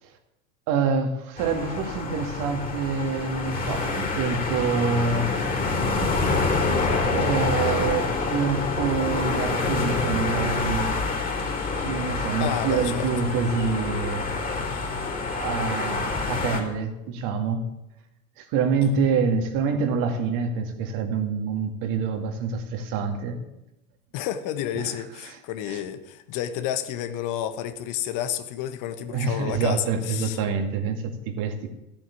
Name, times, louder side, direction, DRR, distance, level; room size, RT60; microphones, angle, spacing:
voice 1, 0.7-5.3 7.1-10.9 11.8-14.2 15.3-17.6 18.4-23.4 24.8-25.4 25.7-25.8 29.1-31.7, right 5 dB, 50° right, 2.4 m, -26 dB
sound 1, 1.4-16.6, left 3 dB, 20° left, 3.7 m, -27 dB
voice 2, 12.4-13.1 24.1-30.4, left 10 dB, 45° left, 1.2 m, -30 dB
14.0 x 8.9 x 7.4 m
hypercardioid pair, 85°, 42 cm